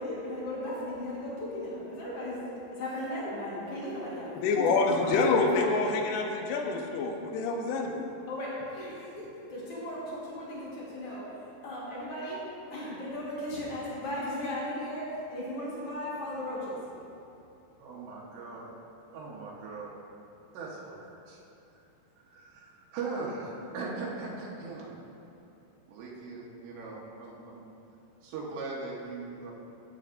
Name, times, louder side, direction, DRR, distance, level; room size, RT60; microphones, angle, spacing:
voice 1, 0.0-2.4 2.7-4.3 4.9-5.9 8.3-12.4 12.7-16.8, left 1 dB, 65° left, -7 dB, 1.4 m, -36 dB
voice 2, 4.4-8.1, left 3 dB, 80° left, 2 dB, 2.6 m, -27 dB
voice 3, 17.8-18.7 19.1-20.0 20.5-21.4 21.7-21.8 22.2-24.9 25.9-27.6 28.2-29.5, right 3 dB, 80° right, -4 dB, 3.3 m, -40 dB
14.0 x 7.7 x 2.5 m, 2.8 s
omnidirectional pair, 5.1 m